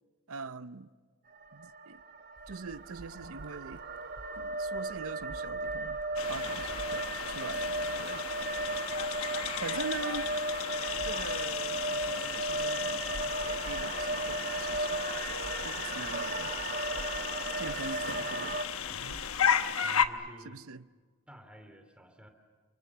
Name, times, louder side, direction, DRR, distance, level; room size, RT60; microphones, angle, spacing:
voice 1, 0.3-0.9 1.5-2.0 2.5-3.8 4.4-6.0 6.3-8.2 9.6-10.6 11.0-15.0 15.6-16.5 17.6-19.3 20.4-20.9, right 4 dB, 80° right, 0.7 m, -43 dB
sound 1, 1.3-18.6, right 2 dB, 50° right, 1.3 m, -35 dB
sound 2, 2.4-19.5, equal, 25° right, 3.0 m, -53 dB
sound 3, 6.2-20.1, left 8 dB, 80° left, 1.1 m, -35 dB
voice 2, 19.4-20.6 21.3-22.3, equal, 5° right, 2.9 m, -53 dB
30.0 x 24.5 x 7.4 m
head